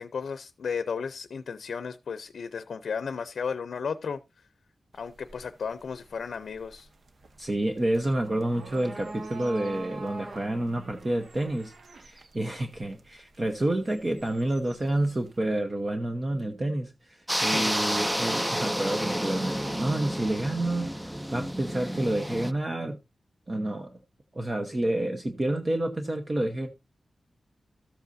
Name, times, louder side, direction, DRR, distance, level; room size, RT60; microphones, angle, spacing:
voice 1, 0.0-4.2 4.9-6.9 17.4-17.8, left 6 dB, 85° left, 0.6 m, -34 dB
sound 1, 4.9-15.4, right 3 dB, 55° right, 1.0 m, -46 dB
voice 2, 7.4-23.0 23.5-24.0 24.3-26.7, right 1 dB, 30° right, 0.9 m, -29 dB
sound 2, 17.3-22.5, equal, 5° right, 0.5 m, -30 dB
13.5 x 8.0 x 2.6 m
wide cardioid pair, 150°, 0 cm